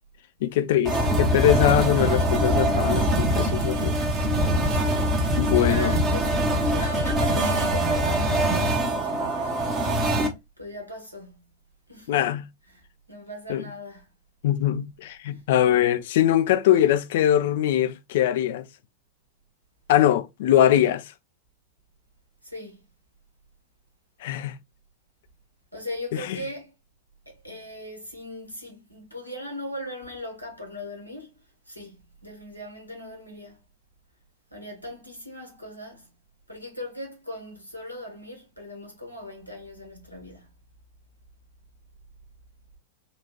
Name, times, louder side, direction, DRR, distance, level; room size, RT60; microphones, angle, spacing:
voice 1, 0.4-3.9 4.7-4.8 5.4-5.9 12.1-12.4 13.5-13.6 14.4-18.7 19.9-21.0 24.2-24.6 26.1-26.4, left 11 dB, 55° left, 0.4 m, -22 dB
sound 1, 0.8-10.3, right 1 dB, 25° right, 1.0 m, -23 dB
voice 2, 4.7-5.2 5.4-9.8 10.1-11.5 11.9-12.3 12.7-14.1 15.3-15.4 22.4-22.8 25.7-26.7 27.3-33.6 34.5-36.1 36.5-40.5, left 1 dB, 90° right, 1.3 m, -39 dB
3.9 x 2.4 x 3.0 m
figure-of-eight pair, 90°, 0 cm